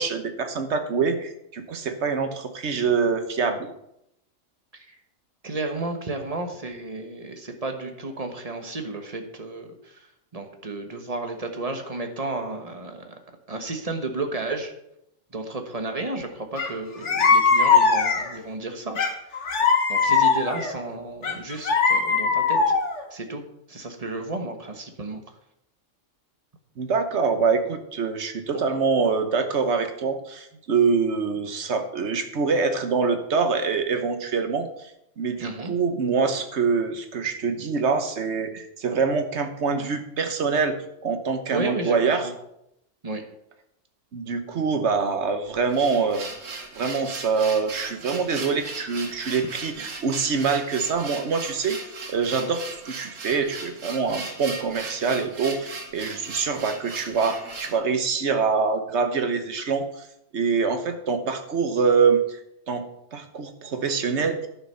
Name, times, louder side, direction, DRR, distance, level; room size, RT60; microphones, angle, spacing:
voice 1, 0.0-3.7 26.8-34.7 35.2-42.3 44.1-46.3 46.7-51.8 52.1-60.1 60.3-62.2 62.7-62.8 63.1-64.5, right 5 dB, 65° right, 7 dB, 1.3 m, -25 dB
voice 2, 5.4-10.1 10.3-13.1 13.5-14.7 15.3-19.0 19.9-22.7 23.1-23.4 23.7-25.2 35.4-35.7 41.5-42.3 43.0-43.2, right 2 dB, 30° right, 5 dB, 1.3 m, -32 dB
sound 1, 16.6-16.7 17.0-18.4 19.0-20.7 21.2-23.0, left 5 dB, 65° left, 1.4 m, -20 dB
sound 2, 45.5-57.8, right 4 dB, 80° right, 1.7 m, -38 dB
11.0 x 6.4 x 5.6 m, 0.79 s
omnidirectional pair, 1.3 m